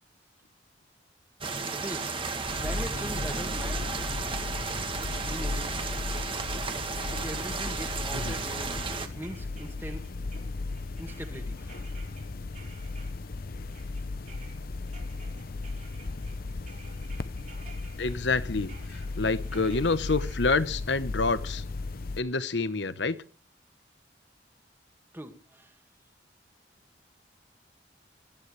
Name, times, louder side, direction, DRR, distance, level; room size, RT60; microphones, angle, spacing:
sound 1, 1.4-9.1, right 4 dB, 30° right, 1.8 m, -34 dB
voice 1, 1.7-2.1 2.6-3.9 5.2-5.8 7.1-10.1 11.0-11.9 25.1-25.8, right 1 dB, 10° right, 2.1 m, -41 dB
sound 2, 2.5-22.2, left 3 dB, 55° left, 0.6 m, -36 dB
sound 3, 5.9-6.7 7.0-13.4 13.7-20.4, right 5 dB, 45° right, 4.4 m, -54 dB
voice 2, 18.0-21.6 22.2-23.2, left 3 dB, 75° left, 1.0 m, -28 dB
21.5 x 13.0 x 3.3 m
head